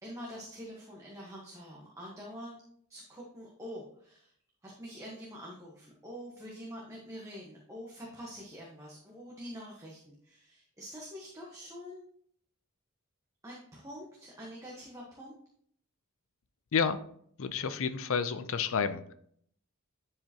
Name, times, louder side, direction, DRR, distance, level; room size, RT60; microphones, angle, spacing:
voice 1, 0.0-2.6 2.9-4.3 4.6-12.0 13.4-15.3, equal, 15° right, -4 dB, 1.2 m, -46 dB
voice 2, 17.4-19.1, left 6 dB, 65° left, 11 dB, 0.5 m, -30 dB
10.5 x 4.8 x 2.9 m, 0.65 s
head